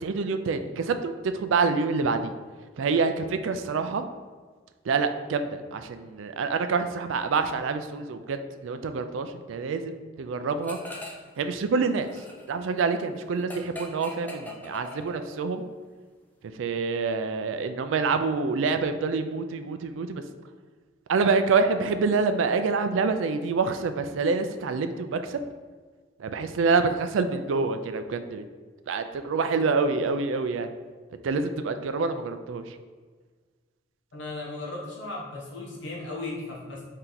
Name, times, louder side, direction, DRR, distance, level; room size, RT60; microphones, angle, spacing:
voice 1, 0.0-2.3 2.8-4.1 4.8-10.8 11.4-12.1 12.5-15.6 16.6-20.2 21.1-25.4 26.2-28.4 28.9-30.7 31.2-32.8, right 4 dB, 85° right, 9 dB, 0.4 m, -26 dB
sound 1, 10.6-11.4 11.7-15.5, left 1 dB, 10° left, 0.4 m, -41 dB
voice 2, 34.1-36.8, left 2 dB, 70° left, -3 dB, 0.9 m, -36 dB
4.4 x 2.8 x 3.8 m, 1.5 s
head